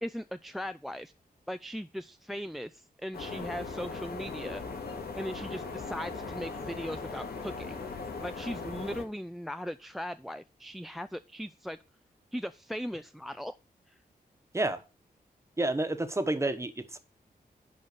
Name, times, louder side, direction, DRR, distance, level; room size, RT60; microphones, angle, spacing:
voice 1, 0.0-1.1 1.5-4.6 5.2-7.8 8.2-11.8 12.3-13.6 13.9-14.0, equal, ahead, 12 dB, 0.3 m, -38 dB
sound 1, 3.1-9.0, left 4 dB, 85° left, 2.4 m, -39 dB
voice 2, 15.6-17.0, right 2 dB, 15° right, 9 dB, 1.1 m, -29 dB
11.0 x 4.0 x 6.6 m, 0.32 s
wide cardioid pair, 115°, 16 cm